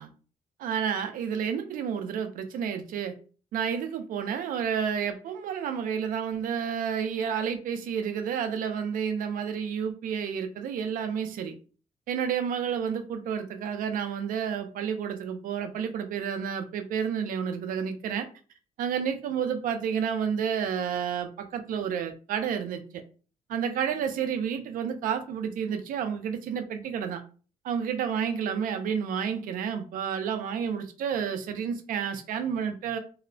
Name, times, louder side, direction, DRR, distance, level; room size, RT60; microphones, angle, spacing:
voice 1, 0.6-3.1 3.5-11.5 12.1-18.3 18.8-23.0 23.5-27.2 27.6-33.0, right 7 dB, 80° right, 0.5 m, -30 dB
2.7 x 2.0 x 2.6 m
cardioid pair, 125°, 14 cm